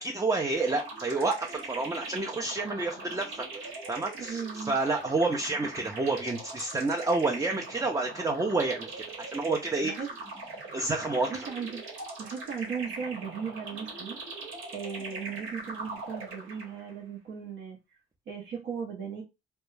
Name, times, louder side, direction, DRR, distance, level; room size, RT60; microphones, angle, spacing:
voice 1, 0.0-9.9 10.7-11.3, right 3 dB, 15° right, 2 dB, 0.4 m, -29 dB
sound 1, 0.5-16.9, right 3 dB, 90° right, 1.1 m, -41 dB
voice 2, 4.2-4.7 9.8-10.1 11.3-11.8 12.2-17.8 18.3-19.2, right 6 dB, 70° right, -2 dB, 0.7 m, -37 dB
2.3 x 2.2 x 3.1 m, 0.24 s
cardioid pair, 90°, 20 cm